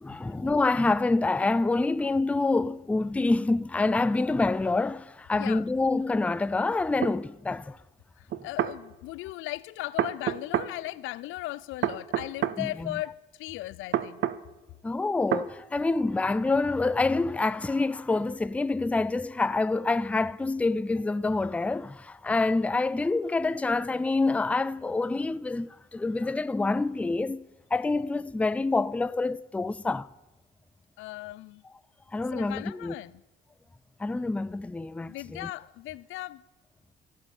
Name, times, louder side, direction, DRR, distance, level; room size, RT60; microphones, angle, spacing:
voice 1, 0.0-7.8 12.6-13.0 14.8-27.4 27.7-30.1 32.1-32.9 34.0-35.5, left 3 dB, 5° left, 0.3 m, -27 dB
voice 2, 5.3-5.6 8.2-14.2 31.0-31.6 32.3-33.2 35.1-36.4, left 17 dB, 90° left, 0.4 m, -37 dB
sound 1, 7.0-7.2 8.3-8.8 10.0-10.7 11.8-12.6 13.9-14.4 15.3-15.5, right 11 dB, 65° right, 0.6 m, -27 dB
14.0 x 8.3 x 5.3 m
cardioid pair, 90°, 20 cm